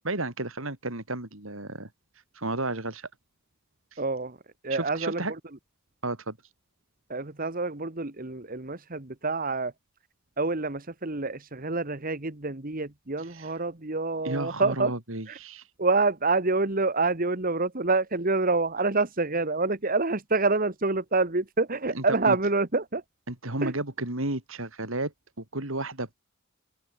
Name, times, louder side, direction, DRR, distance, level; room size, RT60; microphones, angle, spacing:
voice 1, 0.0-1.9 2.4-3.1 3.9-4.0 4.7-5.3 6.0-6.4 13.3-13.5 14.2-15.6 21.9-22.4 23.3-25.1 25.4-26.1, right 2 dB, 70° right, 3.8 m, -32 dB
voice 2, 4.0-4.4 4.6-5.2 7.1-9.7 10.4-14.9 15.3-15.4 15.8-23.0 23.6-23.7, right 3 dB, 40° right, 1.6 m, -27 dB
open air
head